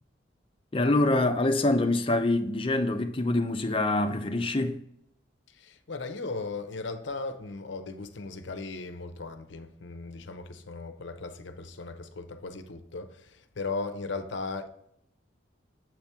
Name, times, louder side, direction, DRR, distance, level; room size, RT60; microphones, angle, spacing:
voice 1, 0.7-4.8, left 2 dB, 25° left, 0.5 m, -25 dB
voice 2, 5.5-14.7, left 3 dB, 70° left, 0.6 m, -37 dB
7.5 x 4.3 x 3.5 m
head